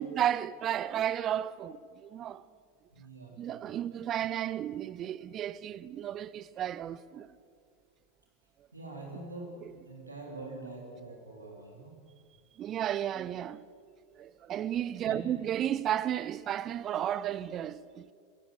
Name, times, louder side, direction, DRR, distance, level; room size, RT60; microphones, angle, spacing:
voice 1, 0.0-2.4 3.4-7.3 12.6-13.6 14.2-18.1, right 11 dB, 30° right, 0.5 m, -33 dB
voice 2, 2.9-3.5 8.7-12.1 15.0-15.3, right 2 dB, 80° right, 3.6 m, -44 dB
27.5 x 16.0 x 6.7 m
figure-of-eight pair, 90°, 0 cm